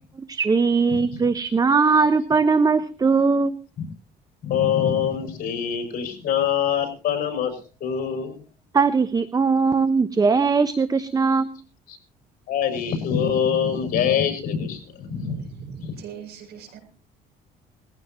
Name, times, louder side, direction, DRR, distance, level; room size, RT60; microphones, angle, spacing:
voice 1, 0.3-3.6 8.7-11.5, right 4 dB, 20° right, 13 dB, 0.9 m, -20 dB
voice 2, 4.4-8.4 11.9-12.0 12.5-15.3, left 8 dB, 60° left, 6 dB, 6.5 m, -24 dB
voice 3, 15.1-16.8, right 6 dB, 70° right, 4 dB, 7.1 m, -38 dB
21.0 x 15.0 x 3.0 m, 0.35 s
cardioid pair, 110°, 17 cm